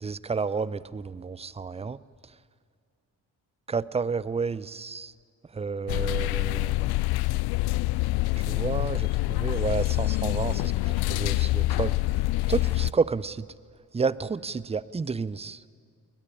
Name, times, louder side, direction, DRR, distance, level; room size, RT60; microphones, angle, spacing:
voice 1, 0.0-2.0 3.7-5.1 5.5-6.9 8.4-12.0 12.5-13.4 13.9-15.7, right 5 dB, 15° right, 19 dB, 0.6 m, -30 dB
sound 1, 5.9-12.9, left 19 dB, 60° left, 0.5 m, -26 dB
19.5 x 14.5 x 9.9 m, 2.1 s
hypercardioid pair, 40°, 43 cm